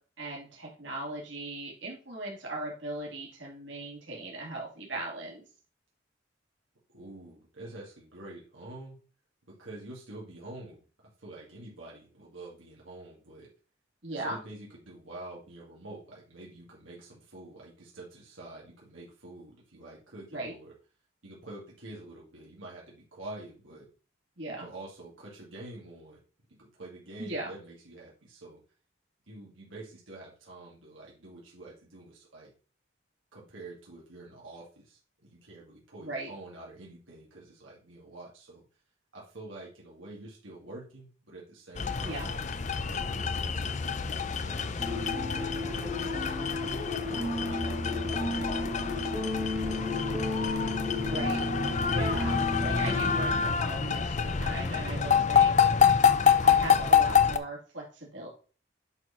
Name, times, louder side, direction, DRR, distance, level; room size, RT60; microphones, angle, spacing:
voice 1, 0.2-5.4 14.0-14.4 20.3-20.5 24.4-24.7 27.2-27.5 36.0-36.3 42.0-42.3 51.1-55.5 56.4-58.3, right 2 dB, 70° right, -2 dB, 2.8 m, -38 dB
voice 2, 6.9-9.0 9.5-10.9 11.2-13.5 14.1-20.7 21.2-23.9 24.6-26.2 26.5-28.6 29.3-32.5 33.3-38.6 39.1-42.4 42.9-43.9 44.4-49.9, right 2 dB, 90° right, -4 dB, 2.4 m, -47 dB
sound 1, 41.8-57.4, left 6 dB, 35° left, 0.5 m, -27 dB
sound 2, 44.8-53.6, left 2 dB, 10° right, 1.3 m, -34 dB
8.8 x 4.4 x 4.2 m, 0.38 s
head